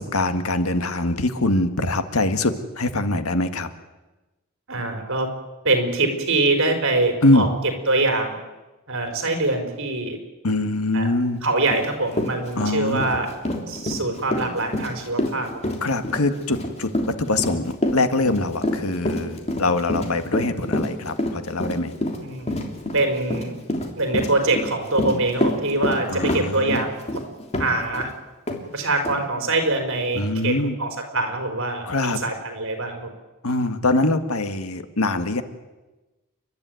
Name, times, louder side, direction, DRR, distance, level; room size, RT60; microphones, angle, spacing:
voice 1, 0.0-3.7 7.2-7.5 10.4-11.4 12.6-13.1 15.8-21.9 26.1-26.8 30.1-30.8 31.9-32.2 33.4-35.4, left 2 dB, 80° left, 9 dB, 1.8 m, -23 dB
voice 2, 4.7-5.3 5.6-7.5 7.9-8.4 8.9-10.2 10.9-11.1 11.4-13.3 13.7-15.5 22.2-22.5 22.9-23.6 23.9-27.2 27.6-28.1 28.7-30.5 30.8-33.1, right 2 dB, 60° right, 5 dB, 4.7 m, -24 dB
Run, 11.7-11.8 12.1-28.1 28.5-28.6 29.0-29.2, left 1 dB, 30° left, 3.2 m, -27 dB
30.0 x 12.5 x 9.4 m, 1.1 s
head